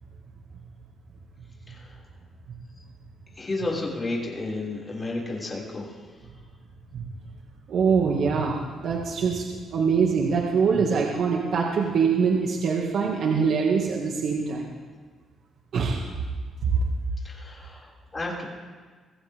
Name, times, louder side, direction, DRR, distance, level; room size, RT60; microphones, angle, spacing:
voice 1, 1.7-2.0 3.4-6.0 17.2-18.4, left 2 dB, 25° left, -4 dB, 6.0 m, -32 dB
voice 2, 7.7-9.4 9.7-14.7 15.7-16.0 16.6-16.7, right 5 dB, 65° right, -1 dB, 2.3 m, -23 dB
23.5 x 15.5 x 3.7 m, 1.5 s
cardioid pair, 90°, 0 cm